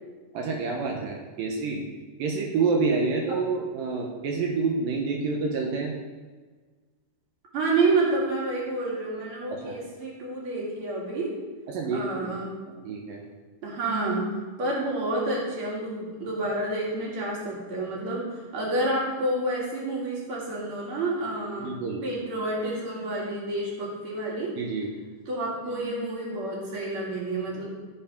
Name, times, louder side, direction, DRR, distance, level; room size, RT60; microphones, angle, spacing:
voice 1, 0.3-1.8 2.2-6.0 9.5-9.8 11.7-12.3 12.8-13.2 21.6-22.1 24.6-24.9, right 4 dB, 80° right, 0 dB, 2.7 m, -28 dB
voice 2, 7.5-11.3 11.9-12.5 13.6-14.3 14.6-21.7 22.0-24.5 25.3-27.6, right 2 dB, 40° right, -4 dB, 3.1 m, -29 dB
14.0 x 4.9 x 5.3 m, 1.4 s
omnidirectional pair, 4.0 m